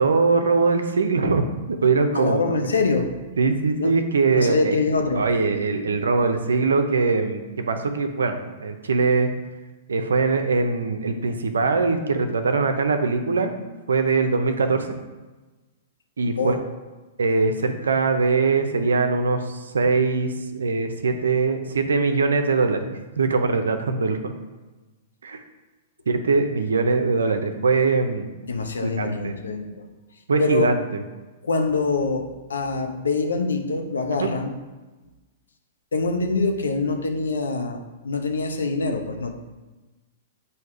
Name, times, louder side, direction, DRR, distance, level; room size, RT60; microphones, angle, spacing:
voice 1, 0.0-1.5 1.8-2.4 3.4-4.8 5.1-9.3 9.9-13.6 13.9-14.9 16.2-16.5 17.2-24.3 25.2-25.4 26.1-28.3 28.8-29.3 30.3-31.0 34.2-34.3, right 4 dB, 90° right, 7 dB, 0.6 m, -22 dB
voice 2, 2.1-3.1 3.7-4.0 4.4-5.3 16.4-16.6 28.5-29.8 30.4-30.7 31.4-34.5 35.9-39.3, left 3 dB, 90° left, 5 dB, 0.7 m, -24 dB
7.8 x 2.8 x 4.8 m, 1.2 s
hypercardioid pair, 125°, 0 cm